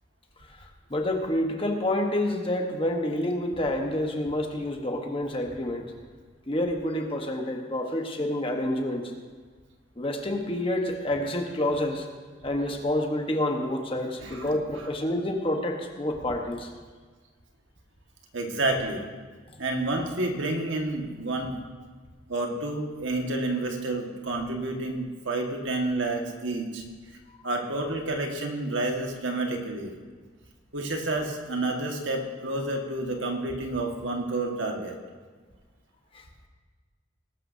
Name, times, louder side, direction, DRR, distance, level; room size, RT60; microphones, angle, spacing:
voice 1, 0.4-5.9 6.5-9.1 10.0-12.1 12.4-16.7 36.1-36.3, left 1 dB, 30° left, 2 dB, 1.2 m, -28 dB
voice 2, 18.3-19.0 19.6-21.6 22.3-26.8 27.4-29.9 30.7-34.9, right 2 dB, 85° right, 2 dB, 1.7 m, -29 dB
19.5 x 12.5 x 2.8 m, 1.5 s
head